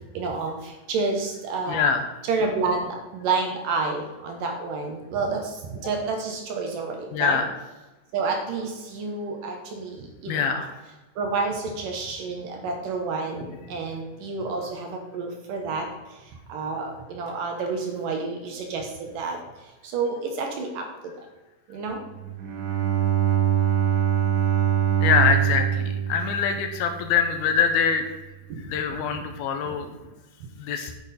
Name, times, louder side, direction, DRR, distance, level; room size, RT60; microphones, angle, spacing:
voice 1, 0.1-1.9 2.2-7.4 8.1-10.6 11.2-21.1 21.7-22.0 28.5-28.6 28.9-29.3 29.7-29.8, right 4 dB, 65° right, 3 dB, 2.4 m, -30 dB
voice 2, 1.7-2.0 7.1-7.5 10.3-10.7 25.0-28.1 28.6-29.9 30.6-30.9, left 6 dB, 75° left, 6 dB, 2.6 m, -24 dB
Bowed string instrument, 22.1-27.4, right 10 dB, 85° right, 3.2 m, -24 dB
9.3 x 8.4 x 4.2 m, 1.1 s
omnidirectional pair, 4.7 m